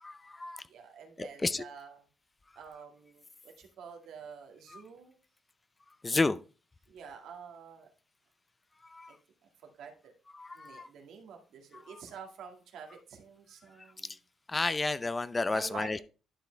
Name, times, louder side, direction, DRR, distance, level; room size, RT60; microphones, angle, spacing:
voice 1, 0.0-0.6 1.2-1.6 6.0-6.4 8.9-9.1 10.4-10.9 14.5-16.0, left 3 dB, 25° left, 0.5 m, -31 dB
voice 2, 0.7-2.1 2.6-5.2 6.9-7.9 9.1-9.2 9.6-10.1 10.5-14.2 15.5-16.0, right 6 dB, 80° right, 1.9 m, -48 dB
11.5 x 4.8 x 3.3 m
cardioid pair, 90°, 0 cm